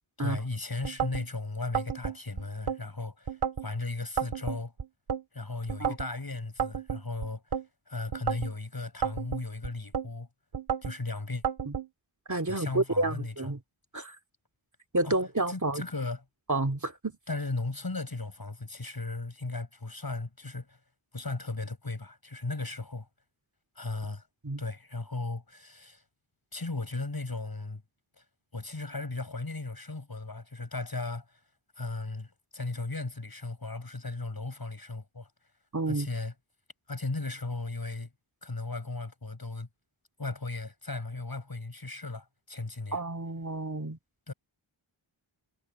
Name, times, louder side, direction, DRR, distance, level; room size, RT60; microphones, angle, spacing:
voice 1, 0.2-4.7 5.3-7.4 7.9-10.3 10.8-11.4 12.5-13.5 15.0-15.2 15.5-16.2 17.3-20.8 21.1-23.1 23.8-24.2 24.6-26.0 26.5-27.8 28.2-28.3 28.5-31.3 31.8-35.3 35.9-36.3 36.9-38.1 38.4-39.7 40.2-43.0 44.3-44.4, left 3 dB, 45° left, 7.0 m, -36 dB
sound 1, 0.8-1.3 1.7-2.8 3.3-3.7 4.2-5.2 5.7-6.1 6.6-7.7 8.1-8.5 9.0-10.1 10.5-11.0 11.4-11.9, right 7 dB, 80° right, 2.4 m, -32 dB
voice 2, 12.3-13.6 13.9-14.2 14.9-15.8 16.5-17.1 24.4-24.6 35.7-36.1 42.9-44.0, right 2 dB, 35° right, 2.4 m, -30 dB
cardioid pair, 45°, 49 cm